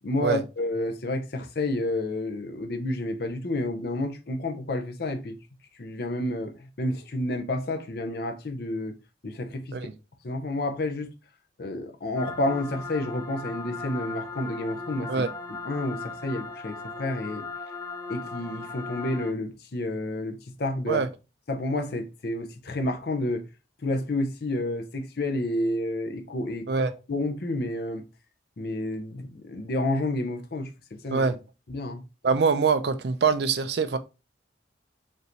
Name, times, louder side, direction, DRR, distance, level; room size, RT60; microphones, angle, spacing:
voice 1, 0.0-5.4 5.8-9.0 9.2-9.8 10.2-11.1 11.6-15.2 15.6-17.5 18.1-21.0 21.5-23.4 23.8-26.7 27.1-28.0 28.6-31.3 31.7-32.0, left 1 dB, 55° left, 0.7 m, -30 dB
sound 1, 12.2-19.3, left 4 dB, 15° left, 0.6 m, -38 dB
voice 2, 32.2-34.0, right 5 dB, 60° right, 0.4 m, -24 dB
5.4 x 2.6 x 3.0 m
head